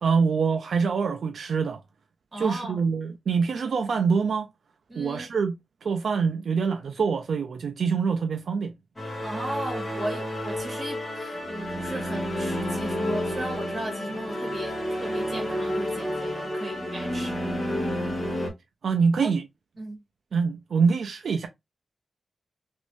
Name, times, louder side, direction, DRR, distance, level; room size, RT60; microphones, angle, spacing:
voice 1, 0.0-1.8 2.4-4.5 5.0-5.5 5.8-8.7 18.8-19.4 20.3-21.5, right 5 dB, 70° right, 0.4 m, -25 dB
voice 2, 2.3-2.8 4.9-5.3 9.2-17.5 19.2-19.3 19.8-20.0, right 1 dB, 30° right, 1.6 m, -36 dB
sound 1, 9.0-18.5, equal, 15° left, 1.2 m, -30 dB
3.1 x 2.6 x 3.0 m
wide cardioid pair, 160°, 0 cm